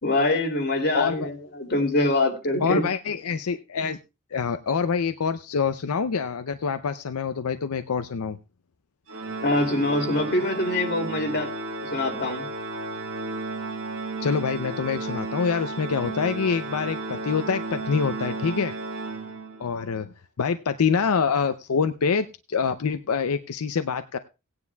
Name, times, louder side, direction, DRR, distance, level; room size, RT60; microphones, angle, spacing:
voice 1, 0.0-2.9 9.4-11.5 11.8-12.5, left 2 dB, 50° left, 2 dB, 2.7 m, -24 dB
voice 2, 0.9-1.3 2.6-4.0 4.3-8.4 14.2-18.7 19.6-24.2, left 5 dB, 85° left, 10 dB, 0.6 m, -26 dB
Organ, 9.1-19.8, right 3 dB, 70° right, 1.9 m, -33 dB
18.0 x 9.6 x 2.3 m, 0.28 s
head